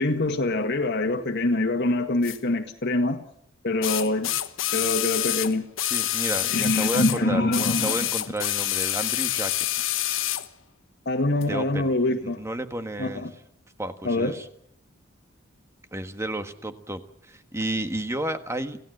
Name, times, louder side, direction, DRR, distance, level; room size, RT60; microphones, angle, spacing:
voice 1, 0.0-3.2 3.6-4.3 4.7-5.6 6.5-8.0 11.1-12.4 13.0-13.3 14.0-14.3, left 2 dB, 55° left, 3 dB, 1.7 m, -24 dB
sound 1, 2.2-2.4 3.8-7.2 7.5-10.5 11.4-11.5, left 13 dB, 75° left, 1.2 m, -27 dB
voice 2, 5.8-9.7 11.5-11.9 12.2-13.3 13.8-14.5 15.9-18.8, right 1 dB, 15° right, 8 dB, 1.5 m, -32 dB
27.0 x 16.5 x 8.0 m, 0.71 s
head